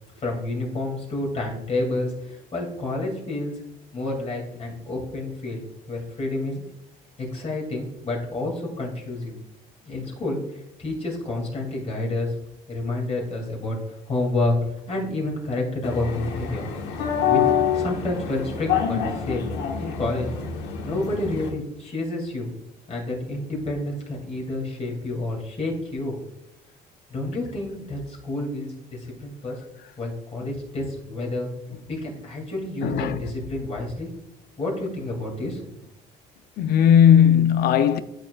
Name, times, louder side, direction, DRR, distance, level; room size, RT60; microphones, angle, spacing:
voice 1, 0.1-3.5 3.9-6.6 7.2-9.4 9.9-12.3 12.7-13.8 14.1-16.7 17.2-17.4 17.7-19.4 19.8-20.3 20.8-22.5 22.9-26.2 27.1-29.6 30.0-31.5 31.9-34.1 34.6-35.8, left 2 dB, 40° left, 2.4 m, -29 dB
sound 1, 15.8-21.5, left 8 dB, 90° left, 1.3 m, -26 dB
voice 2, 32.8-33.2 36.6-38.0, left 9 dB, 65° left, 0.5 m, -17 dB
12.0 x 4.6 x 2.3 m
cardioid pair, 110°, 17 cm